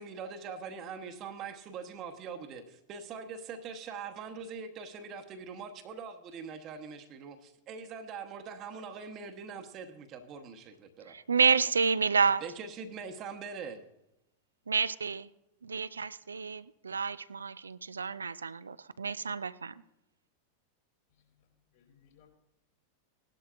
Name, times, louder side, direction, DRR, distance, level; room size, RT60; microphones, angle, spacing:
voice 1, 0.0-11.2 12.4-13.8, right 5 dB, 35° right, 6 dB, 1.1 m, -43 dB
voice 2, 11.1-12.4 14.7-15.3 15.6-19.8, right 5 dB, 75° right, 16 dB, 0.4 m, -29 dB
voice 3, 21.1-22.3, left 8 dB, 60° left, -1 dB, 5.0 m, -65 dB
18.0 x 11.5 x 2.5 m, 0.88 s
figure-of-eight pair, 90°, 0 cm